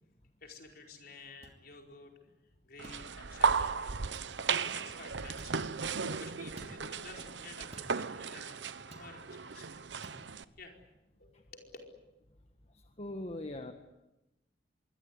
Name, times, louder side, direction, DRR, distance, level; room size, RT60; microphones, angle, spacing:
voice 1, 0.4-2.1 2.6-4.0 4.5-5.5 6.0-9.8 10.6-10.8 11.2-11.7, left 3 dB, 55° left, 3 dB, 4.9 m, -52 dB
sound 1, 1.4-1.6 2.8-3.0 4.1-4.3 5.4-5.6 6.6-6.8 7.7-8.0 8.9-9.1 10.0-10.2, right 2 dB, 35° right, 2.9 m, -51 dB
sound 2, 2.8-10.4, right 5 dB, 85° right, 1.0 m, -35 dB
voice 2, 12.7-13.7, left 1 dB, 35° left, 6 dB, 1.5 m, -41 dB
25.5 x 22.5 x 9.7 m, 0.95 s
head